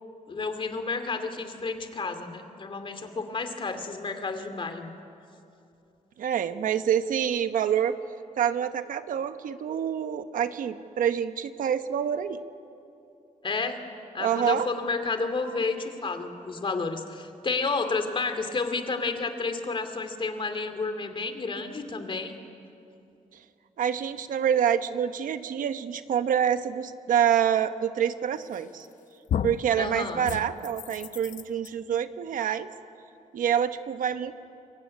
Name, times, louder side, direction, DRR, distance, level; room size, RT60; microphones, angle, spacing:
voice 1, 0.3-4.9 13.4-13.8 14.1-22.3 29.8-30.2, left 4 dB, 40° left, 7 dB, 2.5 m, -31 dB
voice 2, 6.2-7.9 8.4-12.4 14.2-14.7 23.8-28.9 29.4-32.7 33.3-34.3, right 9 dB, 85° right, 10 dB, 1.1 m, -26 dB
sound 1, 28.5-28.9 29.3-29.7 30.2-31.7, left 9 dB, 70° left, 0.8 m, -32 dB
26.0 x 22.5 x 9.6 m, 2.7 s
cardioid pair, 115°, 14 cm